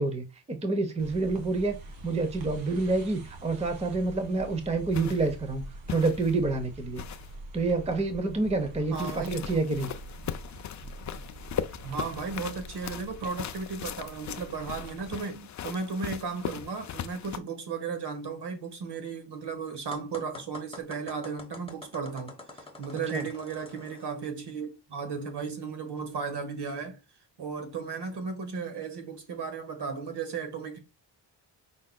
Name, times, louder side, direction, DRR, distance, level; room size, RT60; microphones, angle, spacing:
voice 1, 0.0-1.8 2.0-5.6 5.9-7.0 7.5-9.9 23.1-23.3, right 3 dB, 15° right, 0.7 m, -28 dB
sound 1, 1.0-15.2, right 1 dB, 75° right, 1.6 m, -45 dB
sound 2, 4.9-5.3 5.9-6.4 7.0-7.4 8.9-17.4, left 9 dB, 40° left, 0.4 m, -39 dB
voice 2, 8.9-9.6 11.8-27.0 27.4-30.8, right 5 dB, 60° right, 1.4 m, -35 dB
sound 3, 19.9-24.1, left 2 dB, 10° left, 1.0 m, -46 dB
5.5 x 3.7 x 2.2 m
cardioid pair, 100°, 46 cm